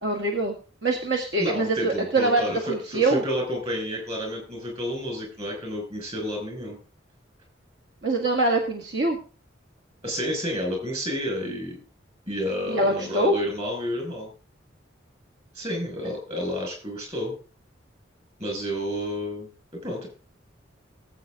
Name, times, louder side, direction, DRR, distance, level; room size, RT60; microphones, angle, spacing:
voice 1, 0.0-3.2 8.0-9.2 12.7-13.4, right 2 dB, 65° right, 1 dB, 1.9 m, -24 dB
voice 2, 1.4-6.8 10.0-11.8 12.3-14.3 15.5-17.3 18.4-20.1, equal, 30° right, 1 dB, 6.1 m, -30 dB
19.0 x 8.3 x 3.8 m, 0.36 s
head